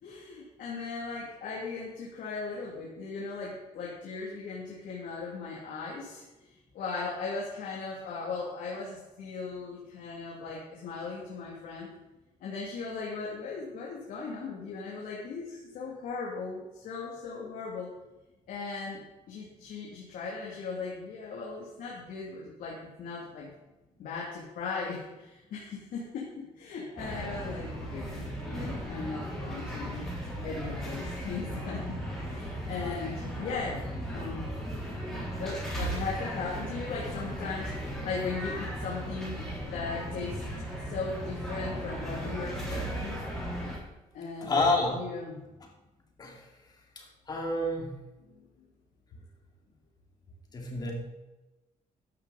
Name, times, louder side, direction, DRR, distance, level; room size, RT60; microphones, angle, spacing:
voice 1, 0.0-11.9 12.4-17.9 18.5-23.5 24.0-30.1 30.4-32.0 32.2-33.9 34.1-34.5 35.4-39.4 39.7-40.4 40.8-43.2 44.1-45.4 48.3-48.7, left 4 dB, 80° left, -4 dB, 3.0 m, -38 dB
sound 1, 27.0-43.8, equal, 5° left, 3.6 m, -36 dB
voice 2, 44.4-45.0 46.2-46.4 47.0-47.9 50.5-50.9, left 2 dB, 30° left, 1 dB, 2.6 m, -29 dB
14.0 x 10.5 x 4.3 m, 1.0 s
cardioid pair, 175°, 14 cm